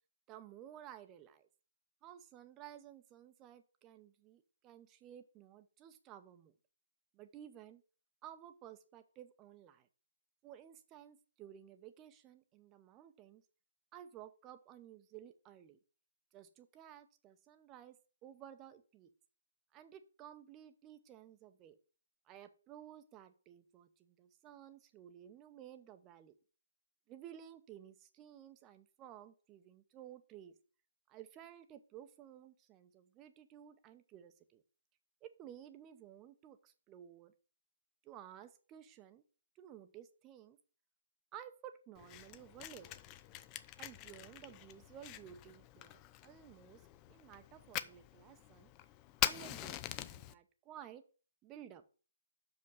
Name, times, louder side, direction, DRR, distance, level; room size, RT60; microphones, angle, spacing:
voice 1, 0.3-1.5 2.0-6.5 7.1-7.8 8.2-9.9 10.4-13.4 13.9-15.8 16.3-19.1 19.7-21.8 22.3-26.4 27.1-30.5 31.1-34.6 35.2-37.3 38.0-39.2 39.6-40.6 41.3-42.9 43.8-46.8 47.1-48.7 49.2-49.8 50.0-51.0 51.4-51.8, right 10 dB, 20° right, 10 dB, 0.8 m, -55 dB
Fire, 41.9-50.3, left 14 dB, 20° left, 0.4 m, -43 dB
6.3 x 5.3 x 6.9 m, 0.38 s
figure-of-eight pair, 135°, 0 cm